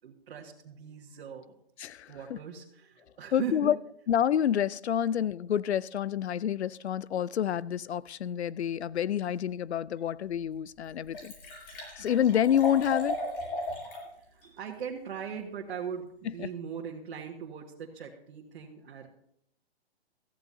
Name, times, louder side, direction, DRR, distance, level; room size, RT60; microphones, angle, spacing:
voice 1, 0.0-1.6 2.1-3.8 14.3-19.1, right 7 dB, 60° right, 1.7 m, -39 dB
voice 2, 1.8-2.4 3.3-3.7 4.1-11.3 12.0-13.2 16.4-16.5, left 10 dB, 80° left, 0.6 m, -28 dB
Liquid, 10.0-10.1 10.5-10.6 10.8-14.1 14.4-14.5, left 1 dB, 55° left, 6.3 m, -36 dB
16.5 x 14.5 x 2.8 m
hypercardioid pair, 140°, 32 cm